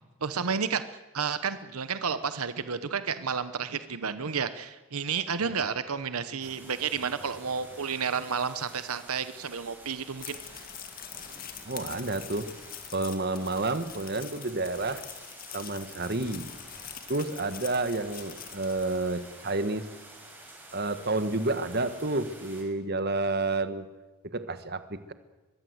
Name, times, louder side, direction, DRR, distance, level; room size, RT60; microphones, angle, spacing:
voice 1, 0.2-0.8 1.1-10.6, right 6 dB, 85° right, 12 dB, 1.0 m, -31 dB
sound 1, 6.4-22.6, right 2 dB, 10° right, 5.1 m, -50 dB
sound 2, 10.0-19.5, left 9 dB, 40° left, 1.9 m, -45 dB
voice 2, 11.6-12.5 12.9-15.0 15.5-16.5 17.1-19.9 20.7-23.9 24.2-25.1, right 2 dB, 45° right, 11 dB, 1.4 m, -30 dB
23.5 x 21.5 x 8.0 m, 1.1 s
head